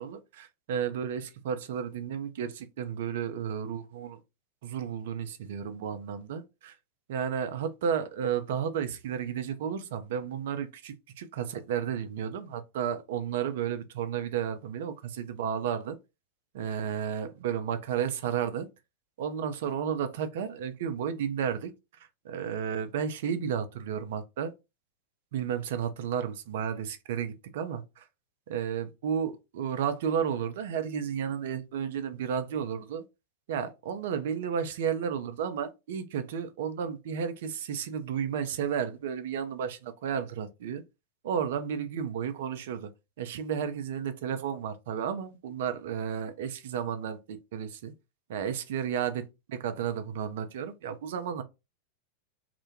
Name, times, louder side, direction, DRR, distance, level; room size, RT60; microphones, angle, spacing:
voice 1, 0.0-4.2 4.6-6.8 7.1-16.0 16.5-18.7 19.2-21.7 22.2-24.5 25.3-28.0 28.5-33.0 33.5-40.8 41.2-42.9 43.2-47.9 48.3-51.4, right 8 dB, 55° right, 0.4 m, -32 dB
2.1 x 2.1 x 2.7 m
figure-of-eight pair, 90°, 0 cm